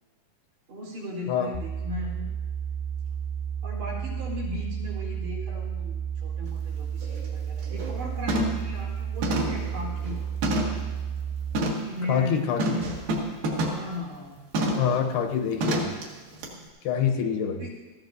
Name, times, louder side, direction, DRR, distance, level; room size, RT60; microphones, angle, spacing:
voice 1, 0.7-2.3 3.6-10.2 11.8-13.0 13.6-14.4 17.0-17.7, left 2 dB, 80° right, -4 dB, 6.1 m, -37 dB
sound 1, 1.5-11.5, right 8 dB, 30° right, 1.2 m, -32 dB
sound 2, 6.5-6.6 7.0-7.3 7.6-8.0 8.3-8.7 9.2-10.9 11.5-11.9 12.6-13.9 14.5-14.9 15.6-16.0 16.4-16.5, right 1 dB, 65° right, 3.3 m, -28 dB
voice 2, 12.1-12.6 14.8-15.9 16.8-17.6, left 7 dB, 80° left, 4 dB, 3.0 m, -25 dB
19.0 x 14.5 x 2.7 m, 1.3 s
omnidirectional pair, 4.5 m